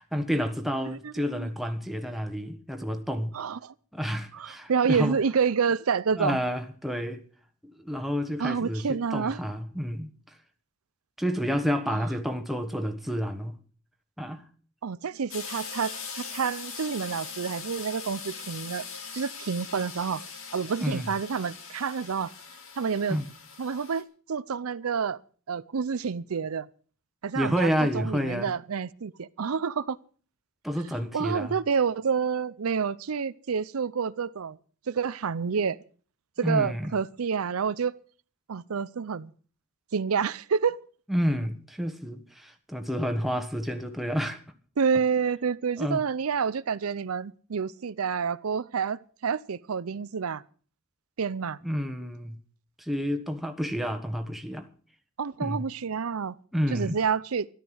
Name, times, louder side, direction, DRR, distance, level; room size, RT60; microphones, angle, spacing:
voice 1, 0.0-3.3 3.9-5.2 6.2-7.2 7.7-10.1 11.2-13.5 14.2-14.4 20.8-21.1 23.1-23.2 27.3-28.5 30.6-31.6 36.4-36.9 41.1-44.4 45.8-46.0 51.6-52.4 52.8-54.7 55.4-55.7 56.5-57.0, equal, ahead, 1.3 m, -29 dB
voice 2, 0.8-1.5 3.3-3.7 4.3-6.4 8.4-9.4 11.9-12.0 14.8-18.8 19.1-20.2 20.5-22.3 22.8-23.2 23.6-25.2 25.5-26.7 27.2-30.0 31.1-34.6 34.9-35.8 36.4-37.9 38.5-39.3 39.9-40.8 44.8-50.4 51.2-51.6 55.2-56.4 56.7-57.5, right 6 dB, 85° right, 0.6 m, -28 dB
sound 1, 15.3-24.0, left 5 dB, 70° left, 2.2 m, -41 dB
13.5 x 12.0 x 6.3 m
head